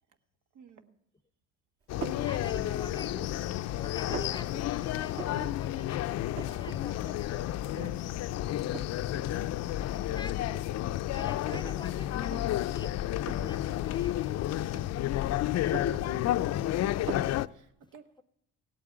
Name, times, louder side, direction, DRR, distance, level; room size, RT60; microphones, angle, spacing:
voice 1, 0.5-0.9 9.1-9.5 16.0-16.6 17.5-18.1, right 7 dB, 80° right, 1.5 m, -52 dB
sound 1, 1.9-17.5, left 13 dB, 55° left, 0.5 m, -31 dB
voice 2, 2.0-3.4 3.8-7.9 10.1-10.6 11.1-13.0 13.4-14.9 15.5-15.8 17.8-18.2, left 2 dB, 15° left, 0.7 m, -46 dB
sound 2, 2.0-2.3 2.9-3.5 3.8-4.4 5.1-5.5 5.8-5.9 6.1-6.8 7.1-7.2 7.7-8.2 8.7-9.0 9.8-9.9 10.5-11.8 12.2-12.4 13.2-13.6 14.5-15.2 15.5-16.6 17.1-17.4, right 6 dB, 50° right, 1.7 m, -41 dB
16.5 x 8.6 x 8.6 m
cardioid pair, 105°, 31 cm